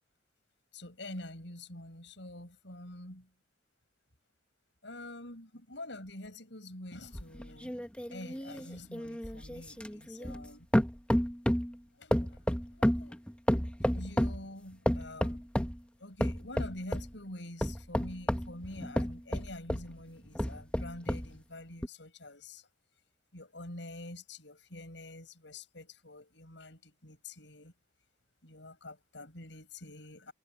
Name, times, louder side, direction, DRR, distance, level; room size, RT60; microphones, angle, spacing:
voice 1, 0.7-3.3 4.8-7.7 8.1-10.7 12.0-12.4 12.8-13.2 13.9-15.4 16.0-22.7 23.3-27.7 28.4-30.3, left 1 dB, 70° left, 6.5 m, -46 dB
sound 1, 7.1-10.5 10.7-11.7 12.1-14.4 14.9-15.8 16.2-17.1 17.6-19.9 20.4-21.3 21.8-21.9, equal, 5° left, 1.2 m, -31 dB
head